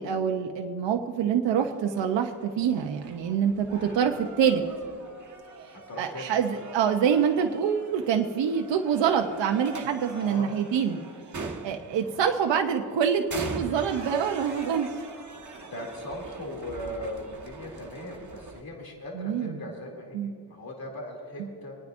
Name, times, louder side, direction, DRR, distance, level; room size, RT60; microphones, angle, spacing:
voice 1, 0.0-4.6 6.0-11.0 11.6-14.9 19.1-19.6 20.1-20.3, right 7 dB, 80° right, 4 dB, 0.8 m, -26 dB
sound 1, 1.6-18.6, right 3 dB, 40° right, 1.6 m, -43 dB
voice 2, 5.9-6.6 10.1-10.5 11.9-12.2 15.7-21.8, left 1 dB, 55° left, -1 dB, 2.8 m, -39 dB
25.0 x 9.5 x 2.6 m, 2.3 s
cardioid pair, 70°, 43 cm